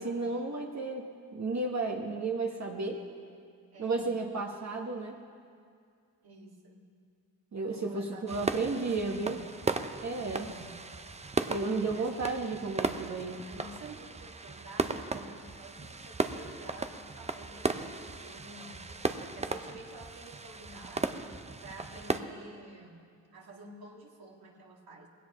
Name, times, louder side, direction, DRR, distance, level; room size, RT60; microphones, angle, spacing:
voice 1, 0.0-3.0 3.8-5.2 7.5-9.4 10.0-10.5 11.5-13.5, right 3 dB, 45° right, 0 dB, 1.4 m, -33 dB
voice 2, 3.7-4.2 6.2-6.9 7.7-9.6 10.3-10.9 11.1-12.7 13.5-21.3 21.6-23.1 23.3-25.1, right 2 dB, 65° right, -1 dB, 2.3 m, -50 dB
sound 1, 8.3-22.2, right 3 dB, 15° right, 0.6 m, -36 dB
19.5 x 16.5 x 3.1 m, 2.2 s
cardioid pair, 70°, 39 cm